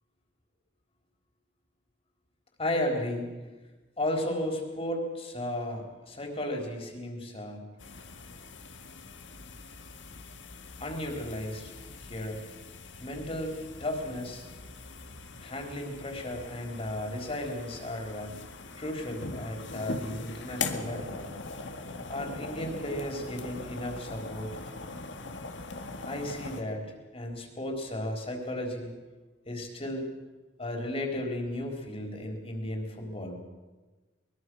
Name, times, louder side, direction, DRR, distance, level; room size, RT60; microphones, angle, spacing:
voice 1, 2.6-3.5 4.0-7.7 10.8-11.7 12.0-12.5 13.0-14.4 15.4-18.4 18.8-21.2 22.1-24.6 26.0-28.9 29.5-30.1 30.6-33.4, left 1 dB, 30° left, 2 dB, 4.2 m, -34 dB
sound 1, 7.8-26.6, left 3 dB, 80° left, 2.0 m, -41 dB
24.0 x 21.0 x 6.4 m, 1.2 s
head